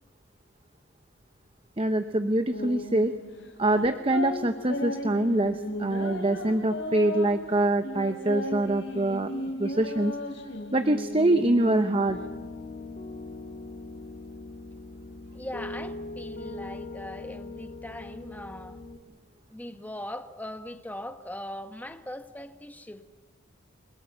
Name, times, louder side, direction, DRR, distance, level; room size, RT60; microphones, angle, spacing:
voice 1, 1.8-3.1 3.6-9.3 9.6-10.2 10.7-12.2, right 1 dB, 25° right, 8 dB, 0.7 m, -24 dB
sound 1, 2.5-12.3, left 1 dB, 70° left, 3.0 m, -36 dB
Piano, 12.1-19.0, left 2 dB, 40° left, 1.5 m, -40 dB
voice 2, 15.3-18.8 19.5-23.0, left 1 dB, 10° left, 7 dB, 1.2 m, -40 dB
30.0 x 19.0 x 7.4 m, 1.4 s
head